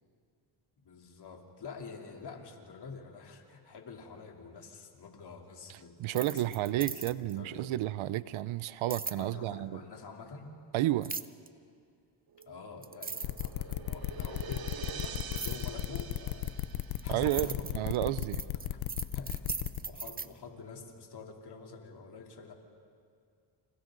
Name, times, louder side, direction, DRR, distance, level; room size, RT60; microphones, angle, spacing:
voice 1, 0.8-7.8 9.2-10.5 12.5-14.6 14.9-16.6 17.0-18.1 18.6-18.8 19.1-19.4 19.8-22.5, left 4 dB, 50° left, 1 dB, 3.5 m, -47 dB
sound 1, 6.0-7.4 8.9-9.2 11.0-11.5 12.4-12.5 12.8-13.9 15.4-15.6 16.5-20.3, right 4 dB, 20° right, 0.7 m, -39 dB
voice 2, 6.0-9.8 10.7-11.1 17.1-18.4, right 15 dB, 75° right, 17 dB, 0.7 m, -31 dB
sound 2, 12.3-17.5, right 6 dB, 45° right, 1.2 m, -46 dB
sound 3, 13.2-19.8, left 13 dB, 85° left, 1.0 m, -35 dB
29.5 x 28.0 x 4.0 m, 2.3 s
cardioid pair, 80°, 49 cm